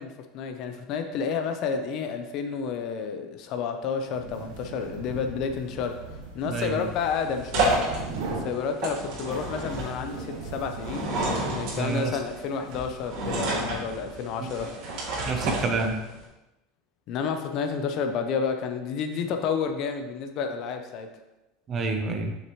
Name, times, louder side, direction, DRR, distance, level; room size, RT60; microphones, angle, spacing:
voice 1, 0.0-6.0 6.3-7.9 8.3-11.1 11.5-14.7 17.1-21.1, left 6 dB, 35° left, 6 dB, 0.5 m, -30 dB
sound 1, 4.0-14.0, right 3 dB, 80° right, 1.7 m, -40 dB
voice 2, 6.4-6.8 11.8-12.1 15.3-16.0 21.7-22.3, right 3 dB, 20° right, 4 dB, 0.7 m, -28 dB
sound 2, 6.4-16.2, right 2 dB, 50° right, 2.5 m, -31 dB
7.3 x 6.5 x 3.0 m, 1.0 s
supercardioid pair, 180°, 0 cm